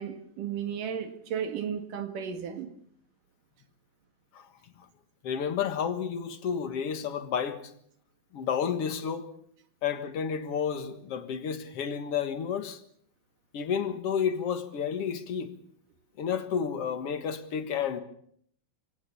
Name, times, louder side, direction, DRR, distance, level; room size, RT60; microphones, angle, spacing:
voice 1, 0.0-2.7, right 8 dB, 65° right, 3.4 m, -34 dB
voice 2, 5.2-7.6 8.3-9.3 9.8-12.8 13.5-15.5 16.2-18.0, left 7 dB, 50° left, 2.0 m, -31 dB
27.0 x 17.0 x 6.9 m
omnidirectional pair, 4.2 m